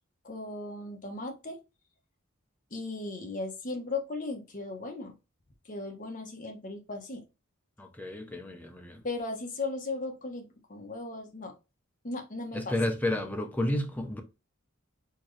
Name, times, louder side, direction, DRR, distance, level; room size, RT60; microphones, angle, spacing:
voice 1, 0.2-1.6 2.7-5.1 5.7-7.2 9.0-11.5 12.0-12.7, left 3 dB, 40° left, 1.1 m, -37 dB
voice 2, 7.8-9.0 12.5-14.2, left 1 dB, 10° left, 0.7 m, -31 dB
4.5 x 3.7 x 3.2 m
head